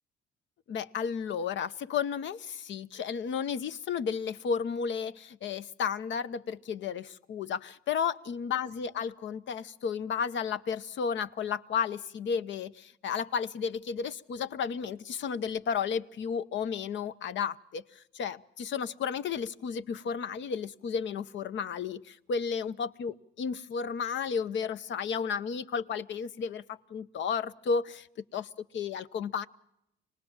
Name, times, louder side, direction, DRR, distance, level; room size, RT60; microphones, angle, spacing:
voice 1, 0.7-28.1 28.3-29.5, left 6 dB, 70° left, 13 dB, 0.9 m, -33 dB
26.0 x 19.0 x 7.3 m, 0.83 s
cardioid pair, 90°, 20 cm